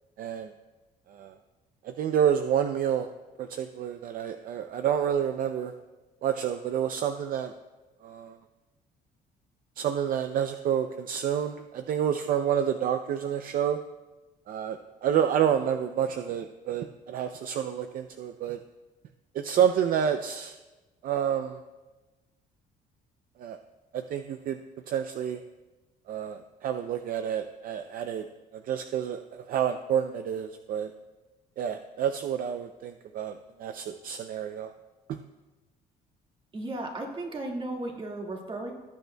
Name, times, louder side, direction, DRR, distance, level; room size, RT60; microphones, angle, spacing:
voice 1, 0.2-0.5 1.1-1.4 1.8-3.1 3.4-5.7 6.2-7.5 8.0-8.4 9.8-13.8 14.5-18.6 19.3-20.6 21.0-21.6 23.4-23.6 23.9-24.6 24.9-25.4 26.1-28.2 28.5-30.9 31.6-34.7 35.1-35.2, right 9 dB, 55° right, 8 dB, 0.5 m, -29 dB
voice 2, 36.5-38.7, right 2 dB, 30° right, 0 dB, 1.9 m, -35 dB
18.5 x 8.0 x 2.3 m, 1.2 s
cardioid pair, 110°, 17 cm